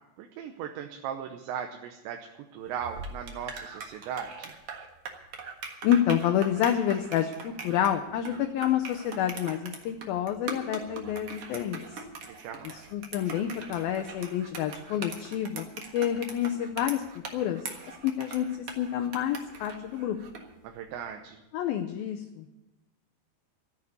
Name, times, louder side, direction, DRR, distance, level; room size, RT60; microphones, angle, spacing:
voice 1, 0.2-2.3 2.5-4.5 12.2-12.8 20.6-21.4, right 8 dB, 80° right, 4 dB, 3.1 m, -38 dB
sound 1, 2.7-20.5, right 5 dB, 65° right, 1.4 m, -41 dB
voice 2, 5.8-11.8 12.6-15.7 15.9-17.0 17.3-17.6 18.0-20.2 21.5-22.6, left 10 dB, 90° left, 5 dB, 2.1 m, -28 dB
13.5 x 8.3 x 9.4 m, 0.96 s
omnidirectional pair, 5.1 m